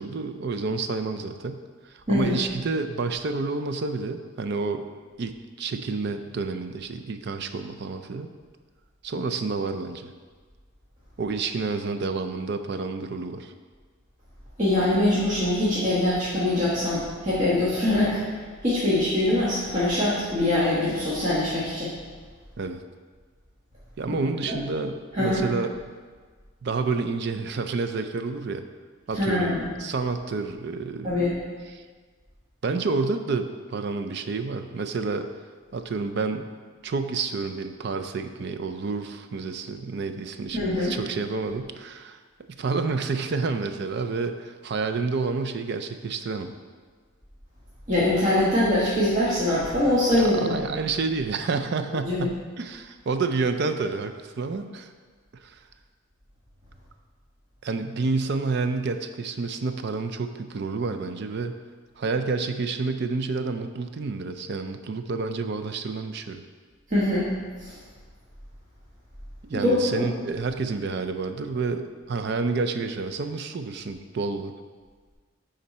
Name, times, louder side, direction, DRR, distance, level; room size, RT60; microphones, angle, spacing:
voice 1, 0.0-1.6 1.9-4.9 5.2-8.3 9.0-10.1 11.2-13.5 22.6-22.8 24.0-25.7 26.6-28.6 29.1-31.3 31.7-31.8 32.6-35.3 35.7-36.5 36.8-42.2 42.6-46.5 50.2-54.9 55.4-55.6 57.6-61.5 62.0-66.4 69.4-74.5, right 4 dB, 55° right, 8 dB, 0.4 m, -29 dB
voice 2, 14.6-18.2 18.6-21.9 24.5-24.6 25.1-25.4 29.1-29.6 31.0-31.3 40.5-40.9 47.9-50.5 52.0-52.3 66.9-67.3 67.6-67.7 69.6-70.1, left 1 dB, 35° right, -10 dB, 1.4 m, -23 dB
9.8 x 3.8 x 4.2 m, 1.5 s
head